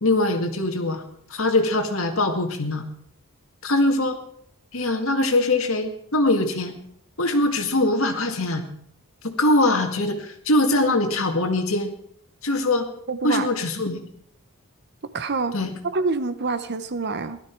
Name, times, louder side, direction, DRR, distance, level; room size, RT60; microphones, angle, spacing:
voice 1, 0.0-1.0 1.3-2.8 3.6-4.2 4.7-6.8 7.2-8.6 9.2-11.9 12.4-12.9 13.2-14.1 15.5-15.7, left 2 dB, 65° left, 5 dB, 2.0 m, -22 dB
voice 2, 13.1-13.5 15.1-15.6 15.8-17.4, right 4 dB, 50° right, 12 dB, 0.9 m, -26 dB
16.5 x 12.5 x 4.6 m, 0.70 s
head